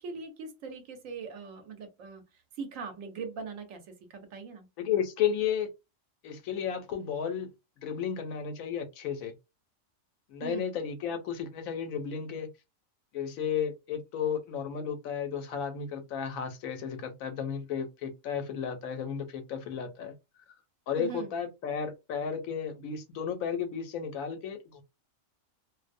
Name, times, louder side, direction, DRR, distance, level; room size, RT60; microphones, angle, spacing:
voice 1, 0.0-2.2 2.6-4.7 10.4-10.7 21.0-21.3, right 5 dB, 75° right, 1.0 m, -40 dB
voice 2, 4.8-5.7 6.2-7.5 7.8-9.3 10.3-12.5 13.1-20.1 20.9-24.8, left 7 dB, 85° left, 1.0 m, -33 dB
2.5 x 2.0 x 2.5 m
omnidirectional pair, 1.4 m